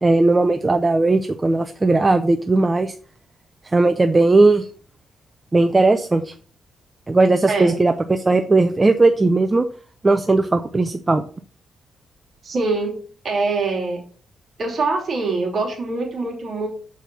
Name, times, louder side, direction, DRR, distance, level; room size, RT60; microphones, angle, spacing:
voice 1, 0.0-2.9 3.6-4.7 5.5-6.3 7.1-9.6 10.0-11.2, right 2 dB, 15° right, 7 dB, 0.4 m, -17 dB
voice 2, 12.4-13.0 13.2-14.0 14.6-16.7, right 3 dB, 40° right, -1 dB, 2.7 m, -23 dB
6.8 x 4.7 x 5.8 m, 0.43 s
wide cardioid pair, 180°, 0 cm